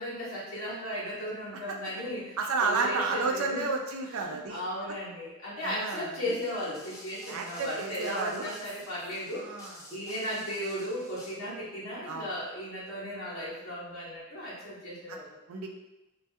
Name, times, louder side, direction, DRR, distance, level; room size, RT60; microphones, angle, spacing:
voice 1, 0.0-3.7 4.0-9.5 9.9-15.4, equal, 60° left, -9 dB, 0.8 m, -36 dB
voice 2, 2.4-4.6 5.6-6.3 7.3-8.5 9.4-10.0 12.1-12.3 15.1-15.2 15.5-15.7, right 4 dB, 70° right, 2 dB, 0.4 m, -31 dB
sound 1, 6.3-11.3, left 1 dB, 15° left, 0.4 m, -50 dB
2.3 x 2.2 x 2.6 m, 1.0 s
head